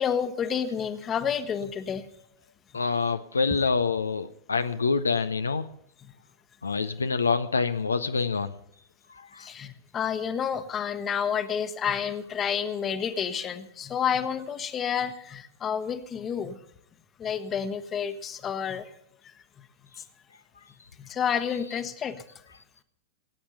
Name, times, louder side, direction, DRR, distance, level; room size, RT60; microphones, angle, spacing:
voice 1, 0.0-2.1 9.4-16.6 17.2-18.9 21.0-22.2, left 7 dB, 25° left, 11 dB, 1.1 m, -29 dB
voice 2, 2.7-5.6 6.6-8.5, left 4 dB, 75° left, 10 dB, 0.5 m, -26 dB
17.5 x 8.6 x 6.9 m, 0.75 s
figure-of-eight pair, 95°, 0 cm